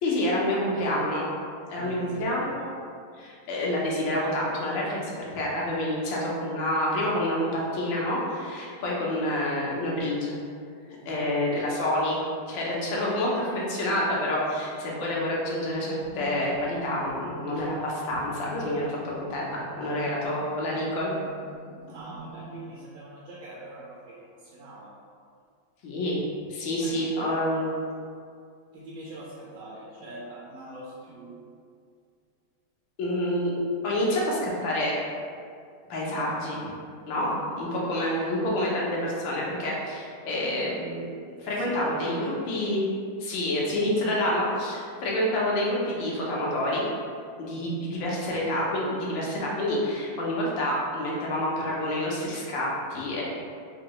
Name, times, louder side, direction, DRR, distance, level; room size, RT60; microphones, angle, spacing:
voice 1, 0.0-1.3 1.7-2.7 3.2-10.4 11.0-12.2 12.5-21.1 25.8-26.2 26.5-27.7 33.0-33.6 33.8-35.0 35.9-36.6 37.1-37.3 37.6-41.1 41.4-42.8 43.2-46.8 47.4-53.2, left 1 dB, 90° left, -4 dB, 1.6 m, -28 dB
voice 2, 1.8-2.4 11.0-11.3 21.8-24.9 26.8-27.0 28.7-31.4 36.2-37.4 41.4-42.4 47.5-47.9, right 1 dB, 70° right, -5 dB, 1.0 m, -44 dB
sound 1, 15.7-22.6, equal, 70° left, 0.9 m, -46 dB
4.0 x 2.7 x 2.9 m, 2.3 s
omnidirectional pair, 2.0 m